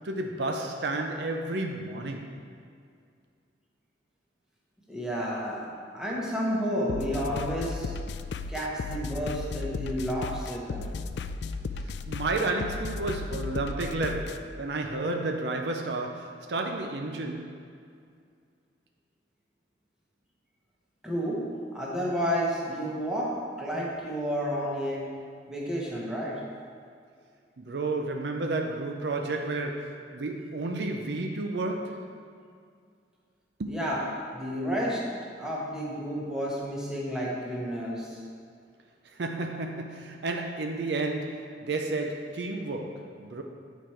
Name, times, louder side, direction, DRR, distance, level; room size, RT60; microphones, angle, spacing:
voice 1, 0.0-2.3 12.1-17.5 27.6-32.1 33.6-33.8 39.0-43.4, right 2 dB, 65° right, 0.5 m, -31 dB
voice 2, 4.9-5.7 5.9-7.9 8.5-10.9 21.0-21.4 21.7-23.3 23.6-25.1 25.5-26.4 33.7-34.0 34.3-35.0 35.4-38.2, equal, 5° right, 1.2 m, -31 dB
sound 1, 6.9-14.4, left 4 dB, 65° left, 0.3 m, -35 dB
9.0 x 4.7 x 4.4 m
head